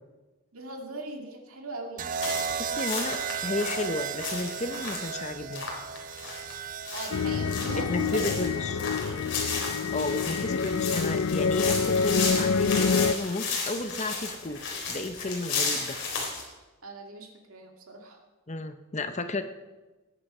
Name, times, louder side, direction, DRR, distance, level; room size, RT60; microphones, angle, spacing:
voice 1, 0.5-2.1 6.9-8.4 8.7-9.3 16.8-18.2, right 2 dB, 75° right, 3 dB, 2.2 m, -40 dB
sound 1, 2.0-10.1 11.3-11.7, right 7 dB, 35° right, 0.5 m, -36 dB
sound 2, 2.2-16.4, left 4 dB, 55° left, 3.9 m, -34 dB
voice 2, 2.6-5.7 7.9-8.8 9.9-14.6 14.9-16.0 18.5-19.4, left 2 dB, 30° left, 9 dB, 0.7 m, -33 dB
sound 3, 7.1-13.1, left 5 dB, 75° left, 0.5 m, -27 dB
19.5 x 10.0 x 5.5 m, 1.2 s
head